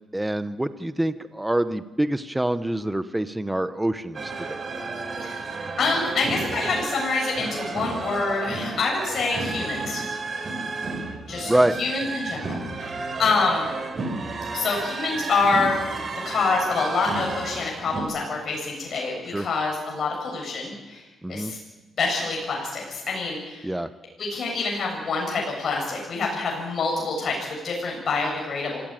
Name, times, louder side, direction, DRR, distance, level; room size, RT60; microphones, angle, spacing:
voice 1, 0.1-4.6 11.5-11.8 19.3-19.4 21.2-21.5 23.6-23.9, right 1 dB, 10° right, 11 dB, 1.0 m, -25 dB
sound 1, 4.1-18.0, right 3 dB, 40° right, 4.7 m, -32 dB
voice 2, 5.8-10.0 11.3-11.5 11.8-13.7 14.5-15.7 16.2-21.6 22.0-23.7 24.2-28.8, left 4 dB, 50° left, -1 dB, 7.4 m, -26 dB
26.0 x 17.0 x 9.1 m, 1.2 s
cardioid pair, 90°, 0 cm